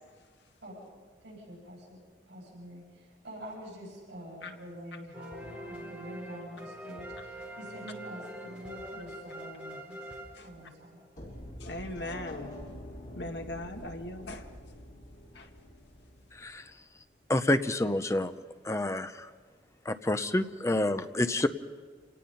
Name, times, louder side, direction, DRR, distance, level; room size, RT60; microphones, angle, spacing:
voice 1, 1.2-2.0 2.3-10.1 10.4-11.0, equal, 80° right, -6 dB, 7.7 m, -46 dB
sound 1, 5.1-11.0, right 1 dB, 5° right, 4.0 m, -44 dB
sound 2, 11.1-17.1, left 1 dB, 50° left, 7.6 m, -46 dB
voice 2, 11.6-12.5 13.2-14.4 15.3-15.5, left 1 dB, 75° left, 4 dB, 1.7 m, -39 dB
voice 3, 17.3-18.3 18.6-19.3 19.9-21.5, left 1 dB, 15° left, 10 dB, 0.7 m, -28 dB
28.0 x 18.0 x 5.6 m, 1.5 s
head